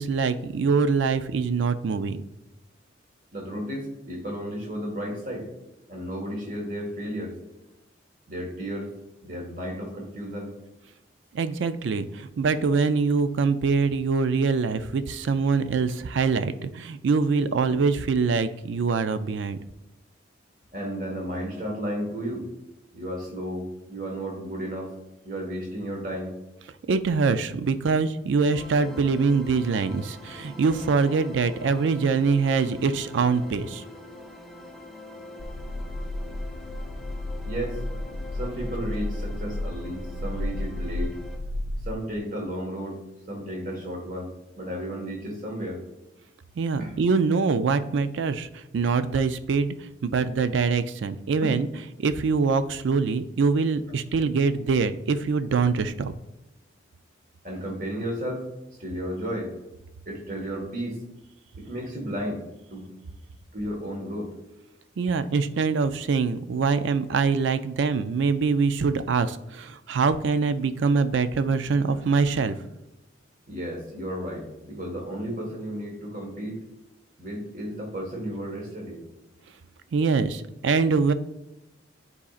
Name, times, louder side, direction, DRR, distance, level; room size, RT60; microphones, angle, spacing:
voice 1, 0.0-2.2 11.3-19.6 26.9-33.8 46.6-51.7 52.0-56.1 65.0-72.7 79.9-81.1, right 4 dB, 75° right, 12 dB, 0.4 m, -24 dB
voice 2, 3.3-5.5 5.9-7.4 8.3-8.9 9.2-10.5 20.7-22.4 22.9-24.9 25.2-26.3 37.5-37.8 38.3-41.1 41.8-43.0 43.3-45.8 46.8-46.9 51.4-51.5 57.4-58.5 58.8-59.5 60.0-61.0 61.6-62.4 62.7-62.9 63.5-64.3 73.5-76.6 77.2-79.0, equal, 45° right, 0 dB, 1.5 m, -33 dB
sound 1, 28.5-41.4, left 2 dB, ahead, 0.5 m, -44 dB
sound 2, 35.4-41.9, left 1 dB, 65° left, 0.5 m, -32 dB
9.8 x 4.1 x 2.4 m, 0.94 s
head